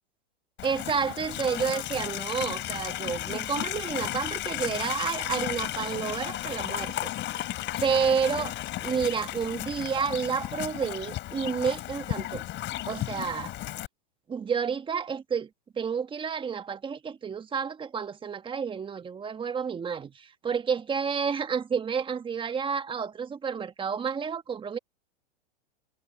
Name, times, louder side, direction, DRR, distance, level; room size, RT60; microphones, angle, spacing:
Livestock farm animals working animals, 0.6-13.9, left 15 dB, 35° left, 4.2 m, -34 dB
voice 1, 0.6-7.1 7.8-12.5 12.9-13.5 14.3-15.5 15.8-24.8, right 6 dB, 15° right, 1.3 m, -30 dB
hypercardioid pair, 130°, 33 cm